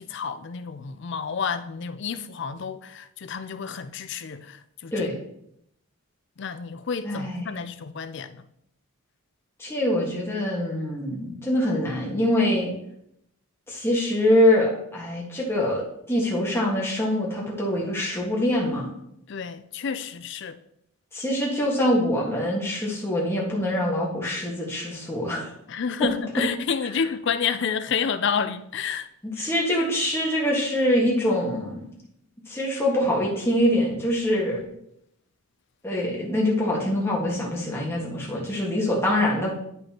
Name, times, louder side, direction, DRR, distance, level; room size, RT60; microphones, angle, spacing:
voice 1, 0.0-5.1 6.4-8.5 19.3-20.6 25.7-29.1 29.4-29.5, left 6 dB, 55° left, 0.4 m, -30 dB
voice 2, 7.0-7.5 9.6-12.7 13.7-18.9 21.1-25.5 29.2-31.9 32.5-34.6 35.8-39.5, left 1 dB, 10° left, 1.5 m, -24 dB
9.3 x 5.4 x 2.9 m
head